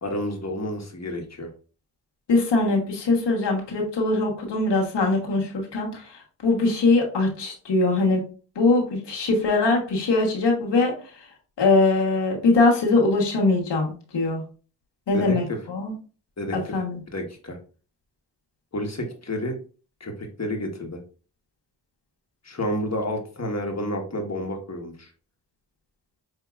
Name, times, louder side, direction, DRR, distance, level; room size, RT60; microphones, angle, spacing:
voice 1, 0.0-1.5 15.1-15.4 16.4-16.7 17.1-17.6 18.7-19.5 20.0-20.1 20.4-21.0 22.4-25.1, left 1 dB, 40° left, 3 dB, 1.3 m, -30 dB
voice 2, 2.3-8.2 8.5-10.9 11.6-14.4 15.1-15.9 16.5-17.0, left 3 dB, 85° left, 0 dB, 1.3 m, -22 dB
5.9 x 2.8 x 2.4 m, 0.38 s
cardioid pair, 40°, 40 cm